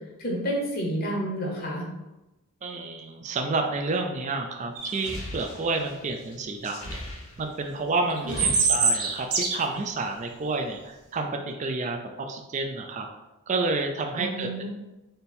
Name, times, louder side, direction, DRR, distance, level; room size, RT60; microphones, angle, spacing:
voice 1, 0.2-1.8 8.2-8.4 14.1-14.7, right 1 dB, 45° left, -1 dB, 0.8 m, -30 dB
voice 2, 2.6-7.0 7.4-13.1 13.5-14.7, right 3 dB, 35° right, 4 dB, 0.3 m, -30 dB
sound 1, 4.8-7.7 8.0-9.4, left 1 dB, 85° left, 1.1 m, -40 dB
sound 2, 4.8-5.1 8.2-9.7, right 4 dB, 90° right, 0.8 m, -23 dB
3.6 x 2.6 x 4.2 m, 1.0 s
head